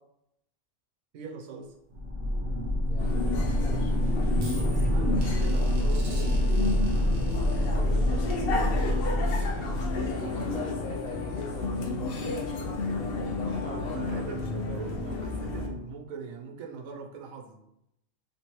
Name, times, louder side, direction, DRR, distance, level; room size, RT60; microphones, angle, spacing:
voice 1, 1.1-1.7 4.8-6.4 8.3-8.5 9.2-9.4 13.5-17.6, right 5 dB, 85° right, 1 dB, 1.1 m, -42 dB
sound 1, 1.9-10.4, left 1 dB, 40° right, 0.9 m, -27 dB
voice 2, 2.9-4.0 7.3-8.6 8.9-9.2 9.7-14.0, left 3 dB, 85° left, -3 dB, 1.5 m, -43 dB
sound 2, 3.0-15.7, left 2 dB, 60° left, 0.6 m, -32 dB
3.2 x 2.9 x 3.0 m, 0.82 s
omnidirectional pair, 1.4 m